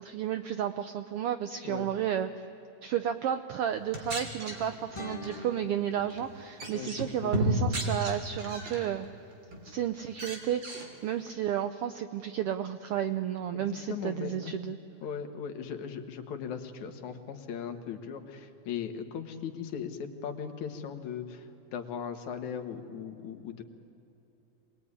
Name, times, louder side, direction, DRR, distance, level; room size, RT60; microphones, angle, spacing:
voice 1, 0.0-2.3 2.8-9.1 9.6-10.6 11.0-14.8, right 10 dB, 80° right, 10 dB, 1.3 m, -32 dB
sound 1, 3.8-5.4 6.0-6.3 6.6-8.9 9.3-9.8 10.1-10.9, right 1 dB, 40° right, 3.5 m, -33 dB
sound 2, 4.9-7.9, left 3 dB, 15° left, 1.5 m, -46 dB
voice 2, 13.5-14.5 15.0-23.6, left 7 dB, 75° left, 6 dB, 2.9 m, -38 dB
26.5 x 20.0 x 9.8 m, 2.9 s
omnidirectional pair, 3.4 m